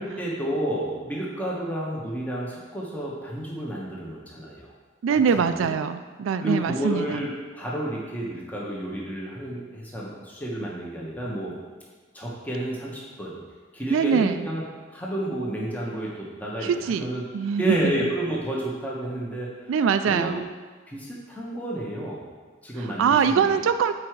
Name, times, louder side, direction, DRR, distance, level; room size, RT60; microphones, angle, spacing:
voice 1, 0.0-4.7 5.1-5.7 6.4-11.6 12.1-13.4 13.7-14.6 14.9-17.2 17.6-19.7 20.0-20.4 20.9-22.3 22.6-23.6, right 1 dB, 10° left, -4 dB, 1.2 m, -30 dB
voice 2, 5.0-7.1 13.9-14.4 16.6-17.8 19.7-20.4 22.8-23.9, right 6 dB, 85° right, 9 dB, 0.3 m, -23 dB
8.4 x 4.8 x 4.6 m, 1.4 s
head